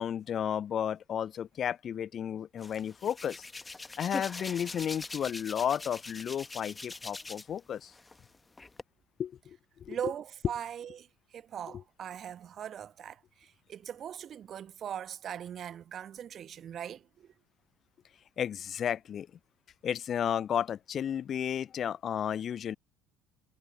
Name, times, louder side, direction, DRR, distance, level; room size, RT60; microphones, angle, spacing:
voice 1, 0.0-3.4 4.0-7.9 9.2-10.0 11.7-11.8 18.4-19.3 19.8-22.8, left 9 dB, 45° left, 0.5 m, -33 dB
Hands, 2.6-7.6 7.9-8.8, left 3 dB, 20° left, 1.5 m, -43 dB
voice 2, 9.9-11.1 11.3-17.3, right 9 dB, 45° right, 1.1 m, -40 dB
figure-of-eight pair, 55°, 0 cm